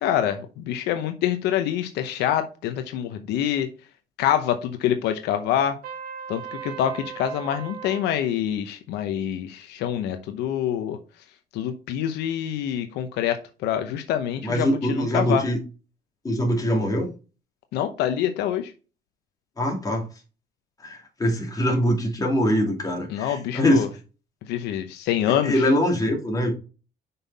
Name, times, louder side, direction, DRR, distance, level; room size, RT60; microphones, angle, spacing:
voice 1, 0.0-3.7 4.2-5.8 6.3-11.0 11.5-15.5 17.7-18.7 23.1-23.9 24.5-25.7, left 10 dB, 85° left, 0.8 m, -26 dB
Trumpet, 5.8-8.1, right 8 dB, 60° right, 1.7 m, -37 dB
voice 2, 14.4-15.6 16.2-17.1 19.6-20.1 20.8-23.9 25.4-26.5, equal, 20° left, 2.7 m, -23 dB
5.6 x 5.6 x 4.1 m
cardioid pair, 110°, 17 cm